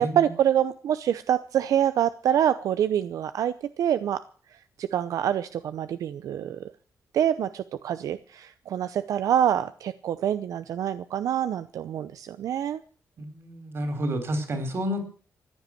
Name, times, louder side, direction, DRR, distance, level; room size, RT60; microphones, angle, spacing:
voice 1, 0.0-4.2 4.8-6.6 7.1-12.8, right 10 dB, 80° right, 13 dB, 0.7 m, -26 dB
voice 2, 13.2-15.1, equal, 45° right, 9 dB, 4.1 m, -30 dB
15.5 x 10.5 x 7.8 m, 0.43 s
wide cardioid pair, 150°, 6 cm